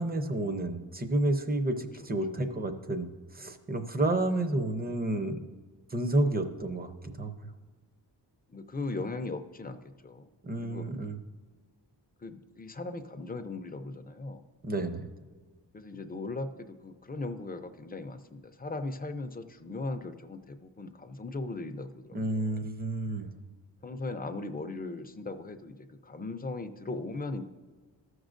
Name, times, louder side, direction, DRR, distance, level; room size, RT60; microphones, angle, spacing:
voice 1, 0.0-5.4 5.9-6.9 7.2-7.5 10.4-11.2 14.6-15.0 22.1-23.3, right 1 dB, 20° right, 7 dB, 0.6 m, -30 dB
voice 2, 8.5-10.3 10.6-10.9 12.2-14.4 15.7-22.6 23.8-27.4, left 3 dB, 20° left, 7 dB, 0.5 m, -38 dB
14.5 x 6.2 x 2.5 m, 1.5 s
wide cardioid pair, 140°, 44 cm